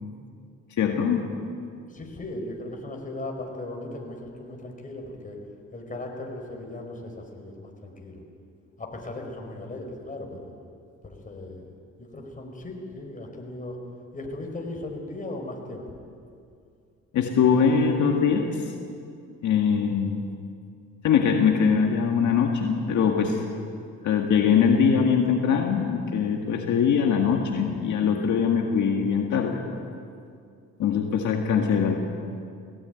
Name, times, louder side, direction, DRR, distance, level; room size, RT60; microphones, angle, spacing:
voice 1, 0.8-1.3 17.1-18.7 19.4-20.2 21.0-23.4 24.0-29.6 30.8-31.9, left 6 dB, 70° left, 2 dB, 2.0 m, -22 dB
voice 2, 1.9-5.4 5.7-8.2 8.8-10.5 11.0-11.7 12.0-13.8 14.1-15.8, left 2 dB, 25° left, 1 dB, 5.1 m, -37 dB
19.0 x 17.5 x 9.3 m, 2.3 s
cardioid pair, 90°, 30 cm